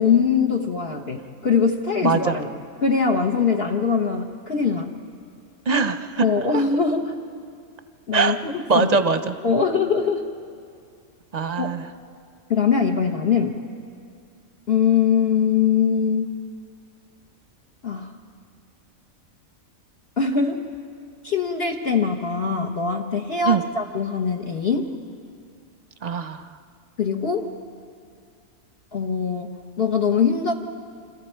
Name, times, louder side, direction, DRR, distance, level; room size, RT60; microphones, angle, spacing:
voice 1, 0.0-2.5 2.8-4.9 6.2-7.1 8.1-9.0 9.4-10.3 11.6-11.7 12.5-13.6 14.7-16.3 17.8-18.1 20.2-20.7 21.2-24.9 27.0-27.5 28.9-29.5 29.8-30.5, left 6 dB, 50° left, 0 dB, 1.4 m, -22 dB
voice 2, 2.0-2.4 5.7-6.2 6.5-6.6 8.1-8.4 8.7-9.3 11.3-11.8 23.4-23.6 26.0-26.4, right 4 dB, 35° right, 9 dB, 0.8 m, -21 dB
29.0 x 26.5 x 4.6 m, 2.3 s
omnidirectional pair, 1.4 m